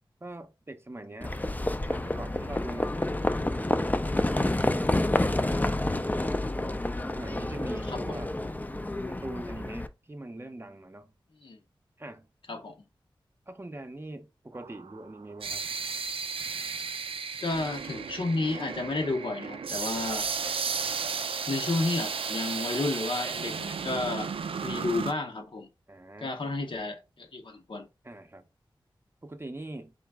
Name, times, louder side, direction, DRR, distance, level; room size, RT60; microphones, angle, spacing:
voice 1, 0.2-1.4 1.9-4.0 4.5-6.5 7.1-8.4 9.1-11.1 12.0-12.3 13.5-15.7 25.9-26.3 28.0-28.4 29.2-29.9, right 2 dB, 25° right, 0.6 m, -43 dB
Livestock farm animals working animals, 1.2-9.9, left 1 dB, 20° left, 0.4 m, -29 dB
voice 2, 7.9-8.2 11.4-11.6 12.5-12.8 17.4-20.3 21.5-24.3 24.6-25.7 26.2-27.9, left 2 dB, 65° left, 0.8 m, -31 dB
sound 1, 14.6-25.1, right 5 dB, 85° right, 0.4 m, -34 dB
3.9 x 3.1 x 3.4 m
cardioid pair, 50°, 9 cm